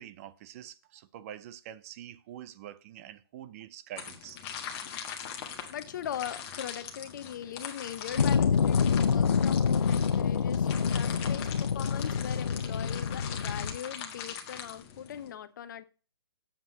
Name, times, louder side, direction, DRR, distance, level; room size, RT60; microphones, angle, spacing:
voice 1, 0.0-4.4, right 11 dB, 35° right, 0.6 m, -46 dB
sound 1, 4.0-15.3, left 8 dB, 30° left, 1.6 m, -42 dB
voice 2, 5.7-15.8, left 10 dB, 50° left, 0.9 m, -40 dB
sound 2, 8.2-13.8, left 6 dB, 80° left, 0.5 m, -27 dB
7.7 x 5.3 x 6.4 m
hypercardioid pair, 135°, 13 cm